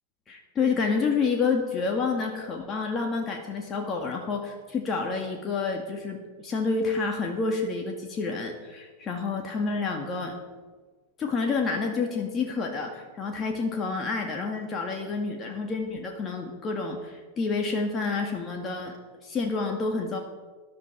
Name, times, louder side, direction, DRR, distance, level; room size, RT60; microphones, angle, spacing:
voice 1, 0.3-10.3 11.2-18.9 19.2-20.2, left 4 dB, 25° left, 2 dB, 2.0 m, -29 dB
19.5 x 11.5 x 4.6 m, 1.4 s
figure-of-eight pair, 90°, 0 cm